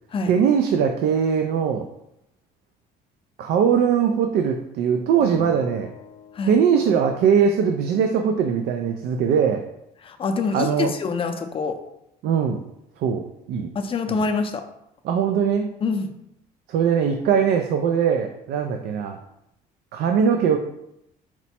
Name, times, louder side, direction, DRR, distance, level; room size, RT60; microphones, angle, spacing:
voice 1, 0.3-1.9 3.4-5.9 6.5-9.6 10.5-10.9 12.2-12.6 13.0-13.7 14.1-14.2 15.0-15.7 16.7-19.2 19.9-20.6, right 7 dB, 70° right, 5 dB, 0.4 m, -21 dB
Acoustic guitar, 5.2-7.6, left 5 dB, 70° left, 0.6 m, -41 dB
voice 2, 10.0-11.8 13.7-14.6 15.8-16.1, left 4 dB, 35° left, 5 dB, 0.5 m, -25 dB
4.4 x 2.0 x 4.2 m, 0.81 s
cardioid pair, 110°, 17 cm